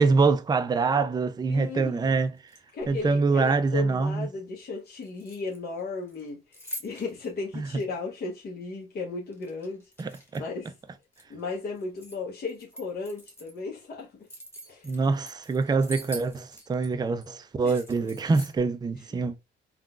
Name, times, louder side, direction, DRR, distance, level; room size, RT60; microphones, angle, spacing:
voice 1, 0.0-2.3 2.9-4.3 7.5-7.7 10.0-10.4 14.8-19.4, right 4 dB, 20° right, 0.4 m, -25 dB
voice 2, 1.5-2.2 2.7-10.7 11.3-14.1 14.7-14.9 17.6-17.8 19.1-19.2, left 4 dB, 55° left, 1.0 m, -35 dB
sound 1, 2.4-3.1 5.0-5.8 6.1-7.3 7.8-7.9 9.3-10.6 10.9-12.2 12.5-13.6 14.0-16.9 17.2-17.3 17.6-18.6, equal, 10° left, 1.2 m, -44 dB
3.7 x 2.3 x 2.4 m
cardioid pair, 90°, 20 cm